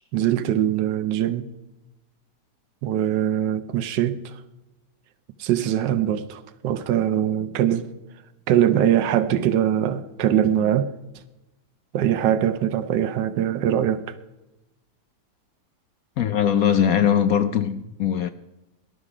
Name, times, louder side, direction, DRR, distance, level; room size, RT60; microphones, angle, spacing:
voice 1, 0.1-1.5 2.8-4.4 5.4-7.9 8.5-10.9 11.9-14.1, right 10 dB, 80° right, 1.5 m, -22 dB
voice 2, 16.2-18.3, left 9 dB, 65° left, 0.9 m, -21 dB
18.5 x 12.0 x 4.9 m
omnidirectional pair, 1.9 m